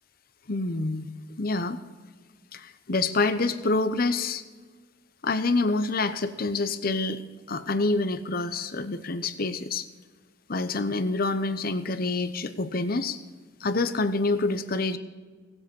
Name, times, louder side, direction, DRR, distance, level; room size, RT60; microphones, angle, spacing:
voice 1, 0.5-1.1 1.4-1.8 2.5-4.4 5.2-7.2 7.5-9.8 10.5-13.2 13.6-15.0, left 3 dB, 50° left, 10 dB, 0.9 m, -27 dB
18.5 x 8.1 x 5.4 m, 1.5 s
head